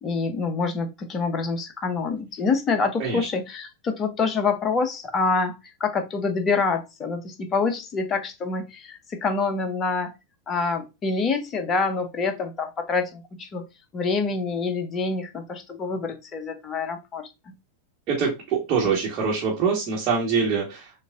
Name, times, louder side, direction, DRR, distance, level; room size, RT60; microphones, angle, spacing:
voice 1, 0.0-10.1 10.5-13.7 13.9-17.5, left 4 dB, 25° left, 7 dB, 0.8 m, -26 dB
voice 2, 18.1-20.9, right 5 dB, 35° right, -5 dB, 1.4 m, -24 dB
6.2 x 2.6 x 2.5 m, 0.25 s
figure-of-eight pair, 90°, 0 cm